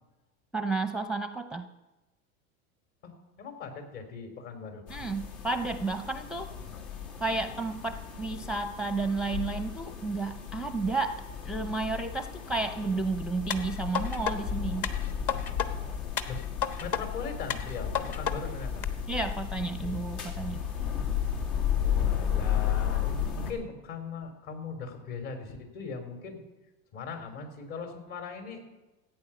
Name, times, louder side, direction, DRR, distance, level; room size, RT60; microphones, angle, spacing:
voice 1, 0.5-1.7 4.9-6.5 7.2-14.9 19.1-20.6, right 3 dB, ahead, 10 dB, 0.5 m, -32 dB
voice 2, 3.0-4.9 6.5-6.8 16.3-16.4 16.8-18.9 19.8-20.6 21.8-26.4 26.9-28.6, left 5 dB, 60° left, 5 dB, 3.8 m, -40 dB
sound 1, 4.9-23.5, left 9 dB, 80° left, 2.9 m, -34 dB
sound 2, 13.5-14.4 14.8-15.7 16.2-17.0 17.5-18.4 18.8-18.9, left 8 dB, 45° left, 1.3 m, -32 dB
14.5 x 9.0 x 7.0 m, 1.1 s
hypercardioid pair, 95°, 43 cm